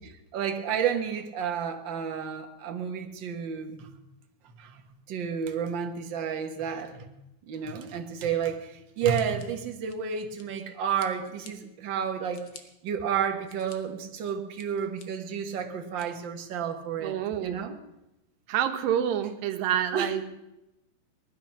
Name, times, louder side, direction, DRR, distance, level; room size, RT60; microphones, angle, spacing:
voice 1, 0.3-3.9 4.6-4.8 5.1-7.1 7.5-12.5 12.8-17.7 19.9-20.1, right 7 dB, 50° right, 4 dB, 1.5 m, -31 dB
Scissors, 9.1-10.6 11.0-11.5 12.0-12.6 13.2-13.8 14.2-15.1 15.6-16.1, left 6 dB, 55° left, 1.5 m, -51 dB
voice 2, 17.0-17.6 18.5-20.3, right 10 dB, 85° right, 7 dB, 2.8 m, -28 dB
19.5 x 12.0 x 5.9 m, 0.90 s
omnidirectional pair, 3.9 m